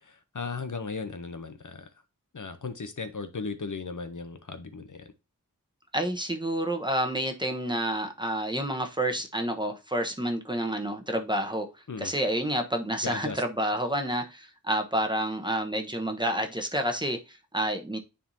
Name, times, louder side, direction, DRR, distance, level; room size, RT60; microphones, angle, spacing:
voice 1, 0.0-1.9 2.3-5.1 11.9-12.1 13.0-13.4, left 4 dB, 65° left, 0.8 m, -36 dB
voice 2, 5.9-11.7 12.0-18.0, right 1 dB, 15° right, 1.0 m, -29 dB
10.0 x 3.6 x 2.7 m
wide cardioid pair, 45°, 34 cm